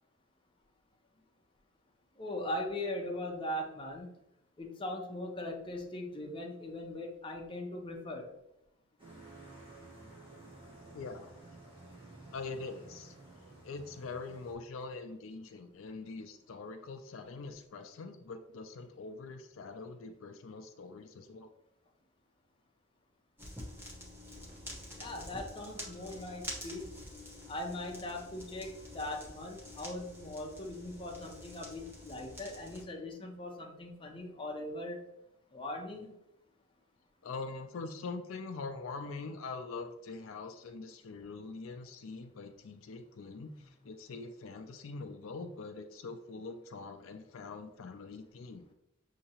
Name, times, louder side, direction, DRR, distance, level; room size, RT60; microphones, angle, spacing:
voice 1, 2.2-4.1 4.6-8.3 24.9-26.9 27.5-35.1 35.5-36.1, left 1 dB, 25° left, 1 dB, 0.7 m, -40 dB
sound 1, 9.0-14.5, right 2 dB, 25° right, 1.5 m, -53 dB
voice 2, 10.9-11.3 12.3-13.1 13.6-21.5 37.2-48.7, left 3 dB, 80° left, 7 dB, 0.4 m, -43 dB
sound 2, 23.4-32.8, left 1 dB, 10° right, 1.0 m, -47 dB
6.5 x 2.8 x 2.8 m, 0.83 s
head